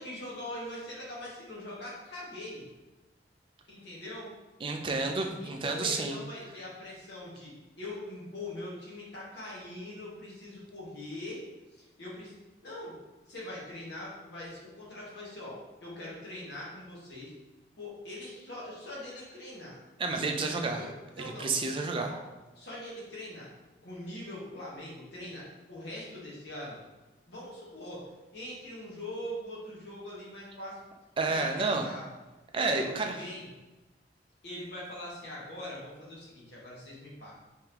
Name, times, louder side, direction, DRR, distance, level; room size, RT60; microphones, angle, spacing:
voice 1, 0.0-2.6 3.7-4.3 5.4-7.5 7.8-11.4 11.7-12.3 12.6-12.9 13.3-17.3 17.8-19.8 20.4-21.5 22.0-22.3 22.5-23.5 23.8-26.8 27.3-28.1 28.3-30.8 31.3-32.1 32.6-33.5 34.4-37.3, left 1 dB, 65° left, -5 dB, 1.2 m, -42 dB
voice 2, 4.6-6.2 20.0-20.8 21.2-22.1 31.2-31.8 32.5-33.1, right 3 dB, 30° right, 3 dB, 0.3 m, -30 dB
3.4 x 3.4 x 2.9 m, 1.1 s
head